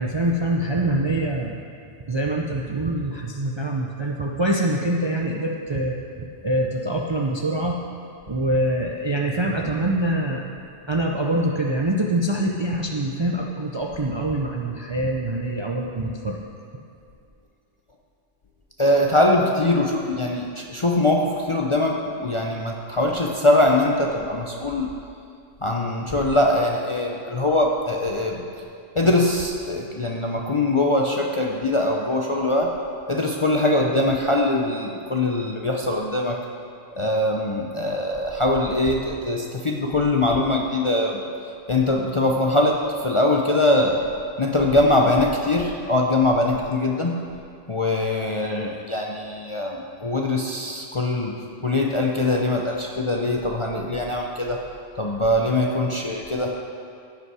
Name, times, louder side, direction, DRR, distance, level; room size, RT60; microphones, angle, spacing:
voice 1, 0.0-1.6 2.1-7.8 8.3-10.5 10.9-16.4, right 1 dB, 40° right, 0 dB, 0.4 m, -24 dB
voice 2, 18.8-24.9 25.6-28.4 28.9-32.7 33.1-36.4 37.0-41.2 41.7-44.0 44.4-47.2 47.7-54.6 55.0-56.5, left 2 dB, 40° left, -1 dB, 0.5 m, -22 dB
15.0 x 5.4 x 4.8 m, 2.4 s
omnidirectional pair, 1.3 m